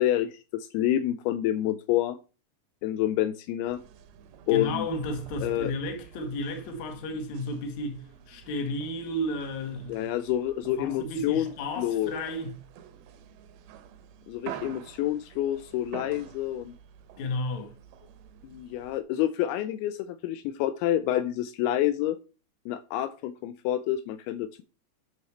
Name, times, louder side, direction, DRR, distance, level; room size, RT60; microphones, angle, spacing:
voice 1, 0.0-2.2 2.8-3.8 4.5-4.9 5.4-5.7 9.9-12.1 14.3-16.8 18.4-22.2 22.7-24.6, left 12 dB, 90° left, 2.2 m, -28 dB
sound 1, 3.7-19.0, right 9 dB, 75° right, 2.4 m, -48 dB
voice 2, 4.5-10.1 10.8-12.6 17.2-17.7, left 1 dB, 60° left, 2.0 m, -33 dB
9.3 x 6.4 x 3.2 m
omnidirectional pair, 5.0 m